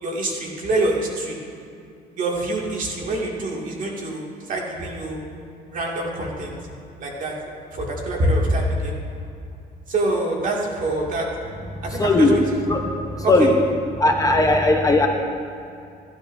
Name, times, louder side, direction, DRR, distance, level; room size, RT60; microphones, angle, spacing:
voice 1, 0.0-1.4 2.2-5.2 5.7-6.5 7.0-7.3 7.7-8.9 9.9-11.3 11.8-12.4 13.2-13.5, right 1 dB, 50° right, -2 dB, 2.3 m, -25 dB
voice 2, 11.7-12.4 12.7-13.5 13.9-15.1, left 2 dB, 20° left, 2 dB, 0.9 m, -18 dB
15.5 x 10.5 x 2.7 m, 2.5 s
cardioid pair, 110°, 17 cm